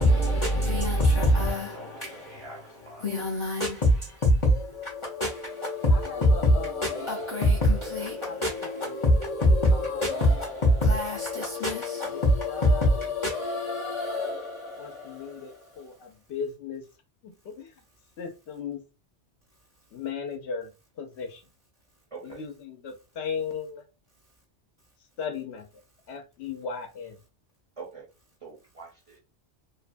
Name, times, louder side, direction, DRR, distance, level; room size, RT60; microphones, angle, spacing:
voice 1, 0.0-15.8, left 1 dB, 45° left, 0.4 m, -25 dB
voice 2, 1.7-3.0 22.1-22.4 27.8-28.1 28.4-29.2, right 4 dB, 40° right, 0.6 m, -44 dB
voice 3, 5.9-7.1 8.2-8.4 8.7-9.0 9.7-10.3 12.1-12.9 14.8-16.8 17.2-17.7 18.2-18.8 19.9-20.7 21.0-21.4 22.2-23.8 25.2-25.7 26.1-27.2, left 6 dB, 75° left, 0.9 m, -37 dB
2.6 x 2.1 x 2.4 m
omnidirectional pair, 1.2 m